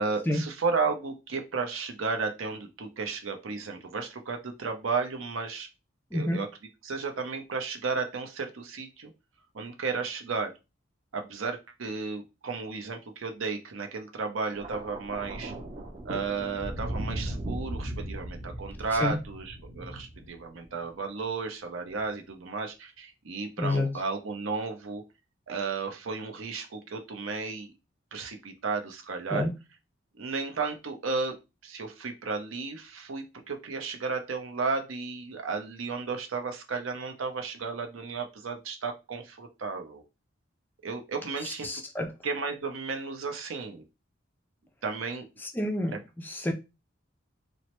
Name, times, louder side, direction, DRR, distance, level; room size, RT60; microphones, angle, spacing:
voice 1, 0.0-5.7 6.1-6.5 6.8-9.1 9.5-10.5 11.1-15.5 16.0-25.0 25.5-27.7 28.1-29.5 30.2-31.4 31.6-40.0 40.8-41.7 42.2-43.8 44.8-45.3, right 4 dB, 90° right, 0.6 m, -33 dB
voice 2, 6.1-6.4 19.0-19.2 23.6-24.0 29.3-29.5 41.4-42.1 45.6-46.5, left 1 dB, 10° left, 0.3 m, -29 dB
Thunder, 14.5-20.9 21.9-22.1, right 1 dB, 35° right, 0.6 m, -37 dB
3.1 x 2.1 x 2.9 m
head